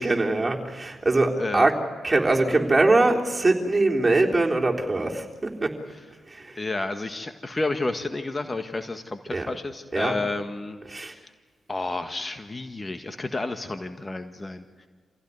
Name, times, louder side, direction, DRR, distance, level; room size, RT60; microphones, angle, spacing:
voice 1, 0.0-1.7 2.0-5.7 6.3-6.5 9.3-9.5 9.9-10.2 10.9-11.1, right 2 dB, 25° right, 0 dB, 3.7 m, -22 dB
voice 2, 1.4-1.7 5.9-6.0 6.5-11.3 11.7-14.6, left 2 dB, 30° left, 8 dB, 1.7 m, -31 dB
26.5 x 16.0 x 9.5 m, 1.5 s
hypercardioid pair, 40°, 0 cm